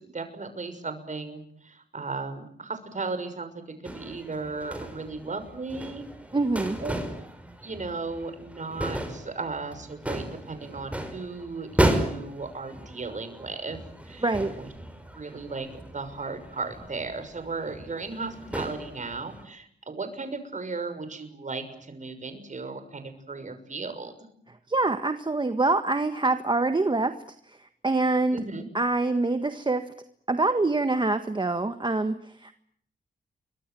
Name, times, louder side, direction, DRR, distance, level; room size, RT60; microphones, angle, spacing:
voice 1, 0.0-6.0 6.8-6.9 7.6-13.8 14.0-14.3 14.6-14.7 15.1-24.1 28.3-28.7, right 3 dB, 45° right, 9 dB, 6.3 m, -36 dB
sound 1, 3.8-19.4, right 1 dB, 5° right, 5.7 m, -34 dB
voice 2, 6.3-6.8 14.2-14.5 24.7-27.1 27.5-28.4 28.7-29.9 30.3-32.5, right 3 dB, 25° right, 9 dB, 1.6 m, -25 dB
29.0 x 24.5 x 7.8 m, 0.66 s
wide cardioid pair, 95°, 18 cm